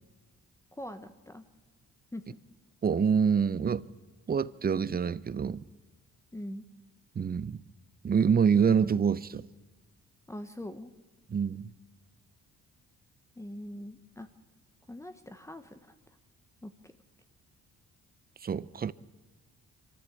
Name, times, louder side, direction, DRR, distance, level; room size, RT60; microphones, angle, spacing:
voice 1, 0.8-1.4 2.1-2.2 6.3-6.6 10.3-10.9 13.4-14.3 14.9-15.9 16.6-16.9, left 1 dB, 10° left, 1.1 m, -42 dB
voice 2, 2.8-3.9 4.3-5.7 7.2-7.6 8.0-9.5 11.3-11.7 18.4-18.9, right 6 dB, 30° right, 0.7 m, -26 dB
24.5 x 14.0 x 8.4 m
cardioid pair, 90°, 30 cm